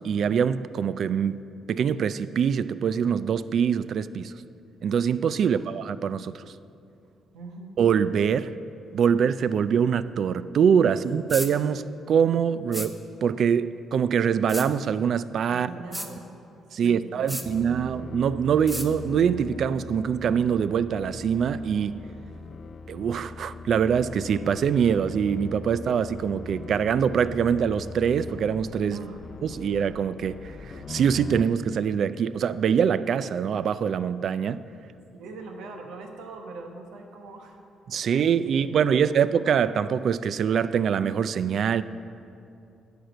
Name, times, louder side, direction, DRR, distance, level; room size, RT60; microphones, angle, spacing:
voice 1, 0.0-1.4 1.7-4.3 4.8-6.4 7.8-8.5 8.9-15.7 16.7-22.0 22.9-29.0 29.6-34.6 37.9-41.8, right 7 dB, 60° right, 0.3 m, -24 dB
voice 2, 7.3-7.7 10.9-11.0 15.5-16.3 16.7-17.9 28.9-29.2 35.1-37.6 38.0-38.1 38.4-39.3, right 3 dB, 90° right, 1.1 m, -42 dB
sound 1, 11.3-11.5 12.7-12.9 14.5-14.7 15.9-16.1 17.3-17.5 18.7-18.9, equal, 5° right, 0.8 m, -32 dB
sound 2, 17.4-31.5, left 4 dB, 50° left, 0.4 m, -41 dB
10.5 x 5.1 x 7.9 m
cardioid pair, 90°, 0 cm